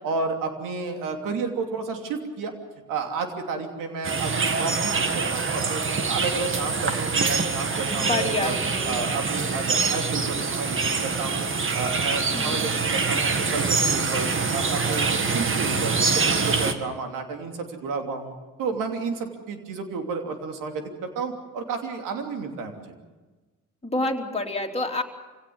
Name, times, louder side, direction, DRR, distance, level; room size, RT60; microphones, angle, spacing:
voice 1, 0.0-2.5 2.9-8.6 8.9-11.5 11.7-18.3 18.6-22.9, right 4 dB, 80° right, 4 dB, 3.0 m, -31 dB
sound 1, 4.0-16.7, right 4 dB, 40° right, 2.0 m, -25 dB
voice 2, 7.7-8.9 12.3-12.6 23.8-25.0, left 2 dB, 20° left, 1 dB, 3.1 m, -28 dB
25.5 x 17.0 x 8.0 m, 1.3 s
supercardioid pair, 65°, 31 cm